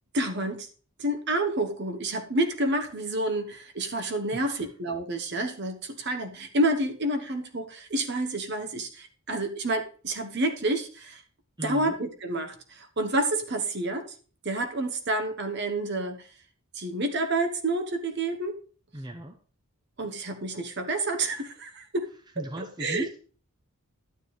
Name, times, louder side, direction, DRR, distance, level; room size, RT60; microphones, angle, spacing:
voice 1, 0.1-0.7 1.0-11.2 11.6-14.1 14.4-16.3 16.7-18.5 20.0-22.1 22.4-23.1, right 2 dB, 50° right, 1.0 m, -29 dB
voice 2, 4.3-4.7 11.6-11.9 18.9-19.3 22.4-23.2, equal, 20° right, 0.7 m, -37 dB
11.5 x 9.5 x 3.2 m
head